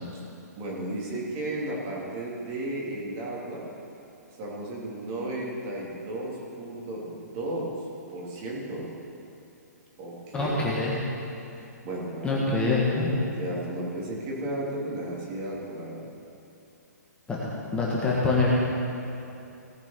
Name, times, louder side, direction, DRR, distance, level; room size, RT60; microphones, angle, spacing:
voice 1, 0.5-3.6 4.4-7.7 8.1-8.9 10.0-10.5 11.5-12.4 13.0-16.0, right 1 dB, 35° right, -4 dB, 3.4 m, -34 dB
voice 2, 10.3-11.0 12.2-13.1 17.3-17.4 17.7-18.5, left 3 dB, 10° left, -6 dB, 1.8 m, -25 dB
18.0 x 6.0 x 6.0 m, 2.8 s
hypercardioid pair, 140°, 9 cm